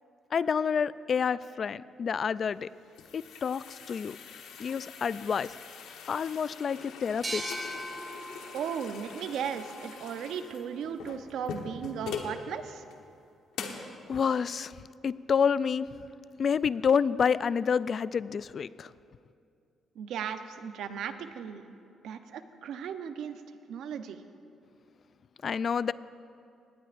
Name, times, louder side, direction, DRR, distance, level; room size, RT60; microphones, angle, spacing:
voice 1, 0.3-2.7 3.1-4.2 4.6-5.5 6.1-7.5 13.7-13.8 14.1-14.7 15.0-15.9 16.4-18.9 25.4-25.9, left 6 dB, 50° left, 17 dB, 0.3 m, -28 dB
sound 1, 2.5-12.4 12.9-13.0 13.5-13.9, left 6 dB, 90° left, 1.2 m, -43 dB
sound 2, 7.2-10.6, right 1 dB, 25° right, 2.4 m, -41 dB
voice 2, 8.5-12.8 20.0-21.6 22.0-23.4 23.7-24.2, right 7 dB, 80° right, 9 dB, 0.7 m, -36 dB
19.0 x 17.5 x 2.6 m, 2.5 s
cardioid pair, 90°, 0 cm